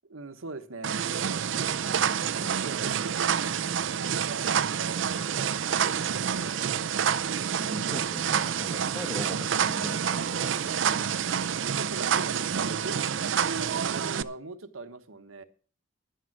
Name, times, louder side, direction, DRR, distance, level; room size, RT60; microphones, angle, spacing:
voice 1, 0.0-1.1 2.0-3.6 3.9-6.6 11.0-13.1 13.4-15.4, right 3 dB, 90° right, 8 dB, 1.3 m, -42 dB
sound 1, 0.8-14.2, right 8 dB, 65° right, 0.5 m, -28 dB
voice 2, 7.6-10.8, left 1 dB, ahead, 5 dB, 1.2 m, -40 dB
11.5 x 9.3 x 6.0 m, 0.43 s
head